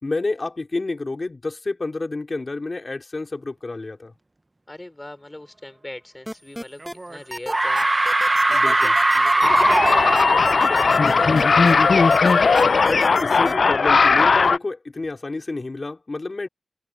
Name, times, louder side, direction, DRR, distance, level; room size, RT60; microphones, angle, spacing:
voice 1, 0.0-4.1 8.5-8.9 12.8-16.5, left 3 dB, 45° left, 4.4 m, -29 dB
voice 2, 4.7-8.1 8.5-11.6, left 1 dB, 20° left, 4.2 m, -39 dB
sound 1, 6.3-6.9 7.3-11.7 12.1-13.5, equal, ahead, 1.2 m, -32 dB
sound 2, 6.8-7.2 7.5-12.1, right 2 dB, 30° right, 0.9 m, -21 dB
sound 3, 9.4-14.6, left 4 dB, 70° left, 0.6 m, -17 dB
cardioid pair, 60°, 0 cm